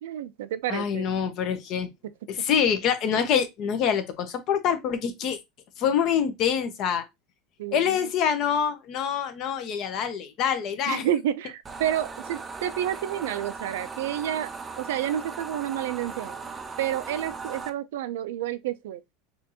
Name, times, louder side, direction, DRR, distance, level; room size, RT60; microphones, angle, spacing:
voice 1, 0.0-1.1 7.6-8.1 10.9-16.4 16.8-19.0, right 11 dB, 85° right, 0.4 m, -30 dB
voice 2, 0.7-1.9 2.3-5.4 5.8-7.0 7.7-11.0, left 8 dB, 45° left, 0.8 m, -25 dB
sound 1, 11.6-17.7, right 4 dB, 15° right, 0.4 m, -38 dB
4.4 x 2.5 x 2.8 m
supercardioid pair, 130°, 0 cm